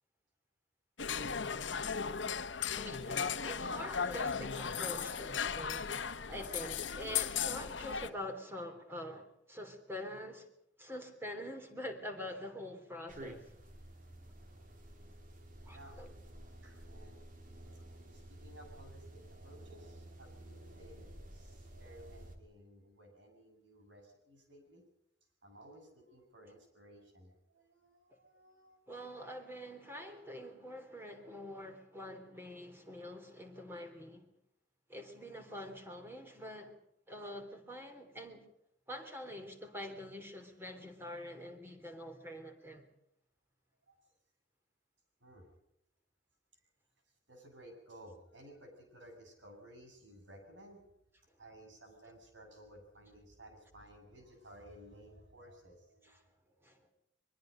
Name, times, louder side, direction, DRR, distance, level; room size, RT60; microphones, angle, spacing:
sound 1, 1.0-8.1, left 6 dB, 85° left, 1.2 m, -36 dB
voice 1, 2.8-10.5 10.8-13.5 15.7-16.1 28.9-34.3 34.9-36.8 37.1-38.5 38.9-42.9 56.0-56.2 56.6-56.9, left 1 dB, 15° right, 3.5 m, -45 dB
sound 2, 13.1-22.4, right 1 dB, 50° right, 3.4 m, -52 dB
voice 2, 15.7-16.0 16.6-17.2 17.7-17.8 18.1-24.9 25.4-28.8 43.8-44.1 45.2-45.5 47.3-50.9 51.4-56.8, right 1 dB, 85° right, 7.8 m, -57 dB
23.5 x 23.0 x 5.2 m
head